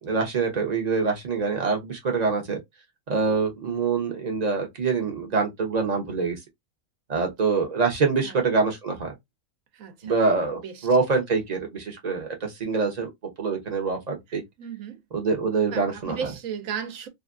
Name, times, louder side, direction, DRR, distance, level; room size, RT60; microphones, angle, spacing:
voice 1, 0.0-2.6 3.1-6.4 7.1-9.1 10.0-13.1 13.4-14.4 15.1-16.2, right 4 dB, 35° right, 0.7 m, -25 dB
voice 2, 9.7-10.9 14.6-15.0 15.7-17.1, right 7 dB, 65° right, 1.1 m, -36 dB
3.0 x 2.4 x 2.4 m
omnidirectional pair, 1.6 m